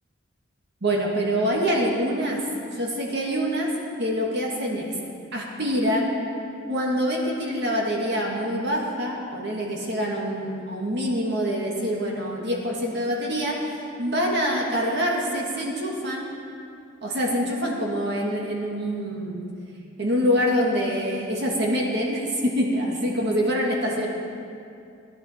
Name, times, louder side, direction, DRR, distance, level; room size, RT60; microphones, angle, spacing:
voice 1, 0.8-2.4 2.7-3.7 4.0-4.9 5.3-6.1 6.7-13.6 14.0-16.3 17.0-19.5 20.0-24.1, equal, 55° right, -2 dB, 1.9 m, -25 dB
18.5 x 11.5 x 4.4 m, 2.5 s
head